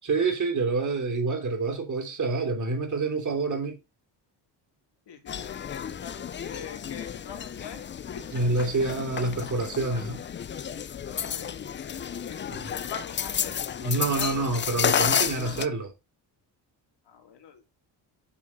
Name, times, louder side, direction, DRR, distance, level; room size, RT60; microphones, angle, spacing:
voice 1, 0.0-3.8 8.3-10.2 12.5-12.7 13.8-15.9, right 3 dB, 40° right, 3.2 m, -27 dB
voice 2, 5.1-8.4 11.0-14.5 17.0-17.6, left 7 dB, 65° left, 2.8 m, -44 dB
sound 1, 5.3-15.7, left 8 dB, 25° left, 0.4 m, -31 dB
7.4 x 6.1 x 4.1 m
cardioid pair, 110°, 45 cm